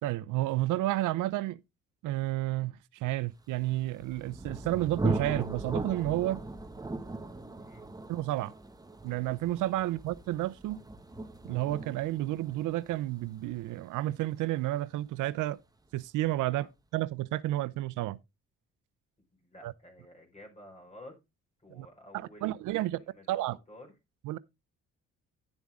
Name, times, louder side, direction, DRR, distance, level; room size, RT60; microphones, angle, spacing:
voice 1, 0.0-1.6 2.0-6.4 8.1-8.5 9.0-10.8 11.4-15.6 15.9-16.7 16.9-18.2 19.6-19.7 21.7-21.9 22.1-23.0 23.3-23.6 24.2-24.4, right 16 dB, 90° right, 0.6 m, -31 dB
Thunder, 3.7-15.2, right 2 dB, 10° right, 1.2 m, -38 dB
voice 2, 19.4-21.1 21.6-23.9, left 1 dB, 20° left, 4.7 m, -52 dB
11.0 x 7.3 x 3.6 m
cardioid pair, 90°, 30 cm